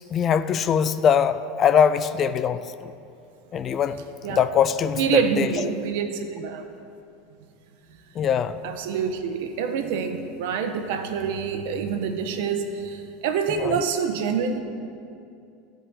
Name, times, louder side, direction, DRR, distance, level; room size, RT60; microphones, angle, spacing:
voice 1, 0.1-2.9 3.5-4.0 4.3-5.7 8.1-8.6 13.6-13.8, left 7 dB, 30° left, 13 dB, 0.5 m, -22 dB
voice 2, 5.0-6.7 8.6-14.6, right 6 dB, 75° right, 7 dB, 1.2 m, -26 dB
15.0 x 5.3 x 9.7 m, 2.5 s
supercardioid pair, 145°, 0 cm